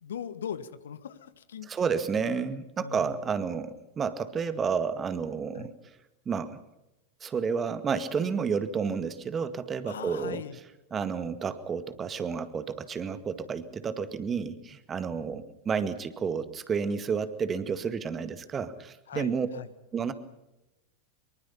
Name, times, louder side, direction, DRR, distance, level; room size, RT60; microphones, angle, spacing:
voice 1, 0.0-1.7 2.8-3.1 5.5-5.7 9.9-10.6 19.1-19.7, left 8 dB, 65° left, 13 dB, 1.5 m, -39 dB
voice 2, 1.6-5.7 6.3-6.6 7.2-10.6 10.9-19.5 19.9-20.1, right 6 dB, 20° right, 11 dB, 1.9 m, -31 dB
24.5 x 23.5 x 5.8 m, 0.92 s
figure-of-eight pair, 90°, 0 cm